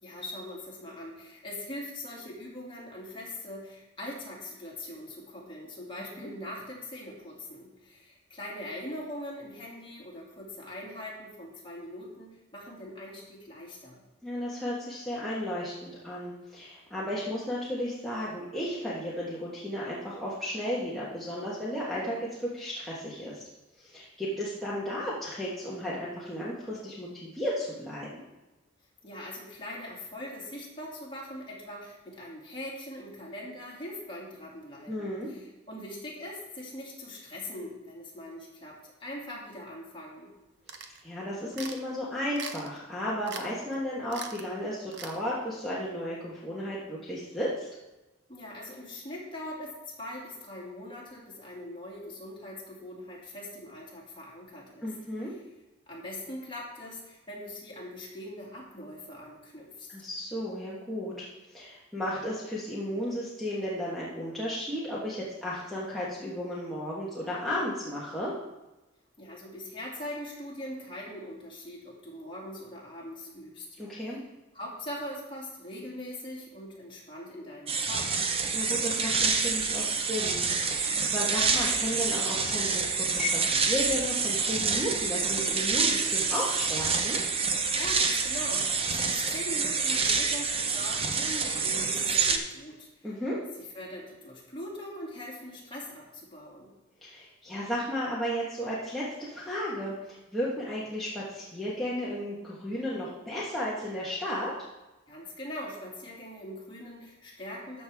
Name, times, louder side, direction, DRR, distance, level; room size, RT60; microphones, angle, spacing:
voice 1, 0.0-14.0 29.0-40.3 48.3-54.9 55.9-59.9 69.2-73.7 74.0-74.2 74.5-78.1 87.8-93.1 93.7-96.7 105.1-107.8, left 1 dB, 25° left, -5 dB, 2.6 m, -41 dB
voice 2, 14.2-23.4 23.8-28.1 34.9-35.3 41.0-47.7 54.8-55.3 59.9-68.3 73.8-74.2 78.5-87.2 93.0-93.4 97.0-104.5, equal, ahead, -8 dB, 1.5 m, -34 dB
sound 1, 40.7-41.0 41.5-41.8 42.4-42.8 43.3-43.5 43.7-43.8 44.1-44.5 44.9-45.2, right 6 dB, 60° right, 0.8 m, -40 dB
sound 2, 77.7-92.4, right 5 dB, 30° right, 0.7 m, -27 dB
13.0 x 6.2 x 3.6 m, 1.0 s
head